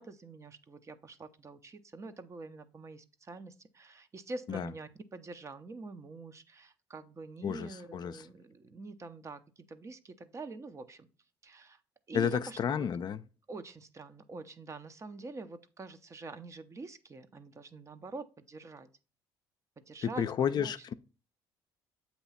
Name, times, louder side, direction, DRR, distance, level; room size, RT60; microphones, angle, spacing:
voice 1, 0.0-11.1 11.4-11.8 12.1-12.9 13.5-18.9 19.9-20.7, right 3 dB, 30° right, 0.8 m, -46 dB
voice 2, 7.4-8.3 12.1-13.2 20.0-20.9, left 8 dB, 50° left, 0.5 m, -31 dB
7.9 x 2.9 x 5.7 m
supercardioid pair, 80°, 9 cm